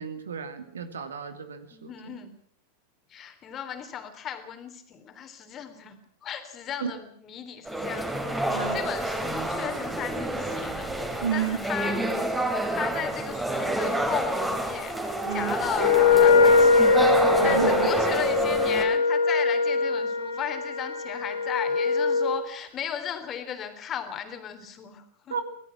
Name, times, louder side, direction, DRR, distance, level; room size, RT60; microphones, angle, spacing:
voice 1, 0.0-1.9 6.8-6.9 8.5-8.8 11.2-11.6 15.3-15.5 17.4-17.9 25.3-25.4, right 7 dB, 70° right, 9 dB, 2.5 m, -31 dB
voice 2, 1.7-2.3 3.1-12.0 12.7-15.0 15.3-17.1 17.4-25.4, left 8 dB, 30° left, 7 dB, 3.5 m, -36 dB
sound 1, 7.7-18.8, right 1 dB, 5° right, 4.0 m, -28 dB
Wind instrument woodwind instrument, 15.8-22.4, left 4 dB, 70° left, 3.1 m, -22 dB
26.0 x 18.0 x 6.1 m, 0.65 s
figure-of-eight pair, 90°, 0 cm